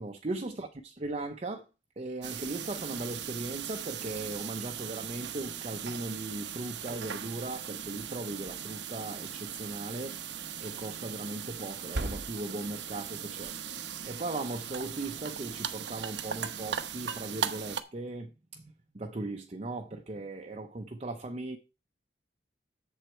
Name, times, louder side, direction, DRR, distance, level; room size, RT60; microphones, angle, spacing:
voice 1, 0.0-1.6 2.0-10.2 10.6-13.5 14.0-21.6, right 2 dB, 35° right, 0.8 m, -38 dB
sound 1, 2.2-17.8, right 7 dB, 90° right, 0.9 m, -38 dB
8.1 x 7.4 x 4.4 m
head